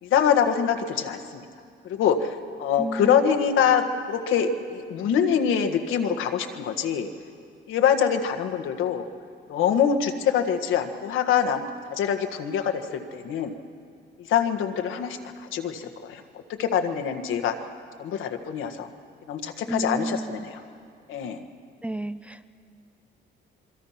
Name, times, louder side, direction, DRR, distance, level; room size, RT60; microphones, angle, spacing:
voice 1, 0.0-1.4 1.8-7.1 7.7-9.1 9.5-11.6 11.9-13.5 14.3-15.2 15.5-16.2 16.5-17.5 18.0-18.9 19.3-20.6 21.1-21.4, left 8 dB, 85° left, 6 dB, 1.6 m, -24 dB
voice 2, 2.8-3.2 19.7-20.5 21.8-22.6, right 1 dB, 5° right, 11 dB, 0.7 m, -32 dB
26.5 x 23.0 x 5.9 m, 2.3 s
cardioid pair, 90°, 20 cm